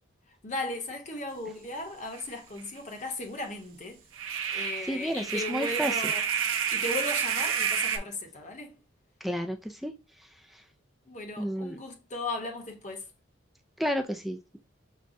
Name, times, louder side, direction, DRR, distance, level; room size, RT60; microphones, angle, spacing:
voice 1, 0.3-4.0 4.5-6.3 6.7-8.8 11.1-13.1, left 2 dB, 35° left, 0.9 m, -36 dB
sound 1, 2.2-2.3 2.6-2.7 4.1-8.0, right 7 dB, 75° right, 0.6 m, -29 dB
voice 2, 4.5-5.9 9.2-9.9 11.4-11.8 13.8-14.6, equal, ahead, 0.3 m, -32 dB
6.5 x 2.2 x 2.6 m
head